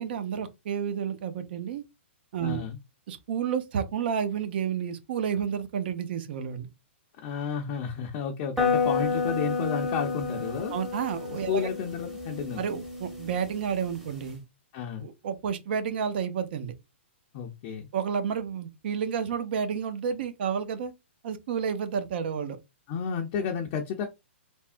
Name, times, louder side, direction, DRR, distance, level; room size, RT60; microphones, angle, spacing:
voice 1, 0.0-1.8 2.3-2.6 3.1-6.7 10.7-11.7 12.6-14.4 15.0-16.7 17.9-20.9 21.2-22.6, right 7 dB, 55° right, 0.6 m, -30 dB
voice 2, 2.4-2.8 7.2-10.7 11.5-12.6 14.7-15.1 17.3-17.9 22.9-24.1, left 7 dB, 35° left, 0.5 m, -31 dB
sound 1, 8.6-14.3, left 5 dB, 5° right, 0.8 m, -31 dB
3.4 x 2.0 x 2.5 m
hypercardioid pair, 140°, 7 cm